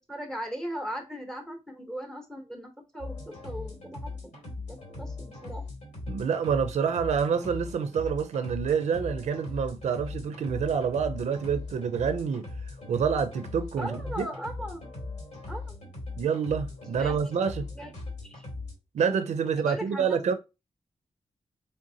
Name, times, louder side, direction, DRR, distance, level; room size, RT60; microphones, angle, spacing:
voice 1, 0.1-4.3 4.7-5.6 13.8-14.8 15.5-15.8 17.0-17.2 17.7-18.4 19.6-20.2, equal, 5° left, 0.8 m, -38 dB
sound 1, 3.0-18.7, left 3 dB, 85° left, 2.4 m, -40 dB
voice 2, 6.1-12.5 12.9-14.3 16.2-17.7 18.9-20.3, right 6 dB, 80° right, 0.4 m, -27 dB
3.8 x 3.4 x 2.6 m
wide cardioid pair, 170°, 12 cm